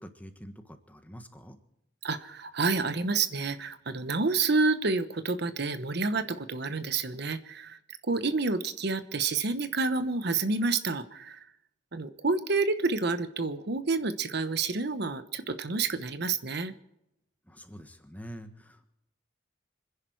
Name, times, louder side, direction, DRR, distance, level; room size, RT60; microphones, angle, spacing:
voice 1, 0.0-1.6 17.5-18.9, equal, 10° left, 7 dB, 1.4 m, -46 dB
voice 2, 2.0-11.4 11.9-16.7, right 3 dB, 55° right, 12 dB, 1.0 m, -29 dB
26.5 x 10.5 x 4.6 m, 0.84 s
head